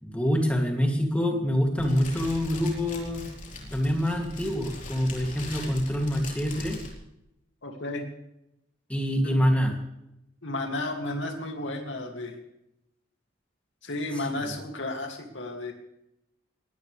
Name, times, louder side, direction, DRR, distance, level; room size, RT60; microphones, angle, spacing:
voice 1, 0.0-3.2 3.6-6.8 8.9-9.7 14.2-14.3, equal, 5° left, 1 dB, 2.7 m, -26 dB
Fire, 1.8-6.9, left 2 dB, 40° left, 4.0 m, -40 dB
voice 2, 7.6-8.0 9.2-9.4 10.4-12.4 13.8-15.7, left 2 dB, 70° left, 3 dB, 2.5 m, -33 dB
22.0 x 17.5 x 3.4 m, 0.84 s
head